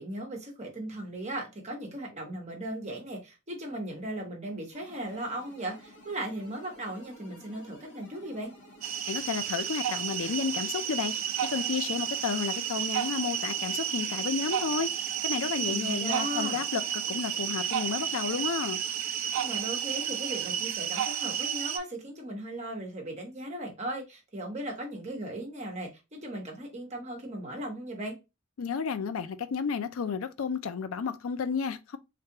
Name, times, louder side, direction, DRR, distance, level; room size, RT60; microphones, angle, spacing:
voice 1, 0.0-8.5 15.6-16.6 19.4-28.2, right 1 dB, 35° right, 1.2 m, -37 dB
sound 1, 4.7-20.8, equal, 55° left, 1.3 m, -52 dB
sound 2, 8.8-21.8, right 9 dB, 75° right, 0.5 m, -32 dB
voice 2, 9.1-11.1 11.4-18.8 28.6-32.0, left 6 dB, 75° left, 0.4 m, -32 dB
3.4 x 3.3 x 2.8 m
head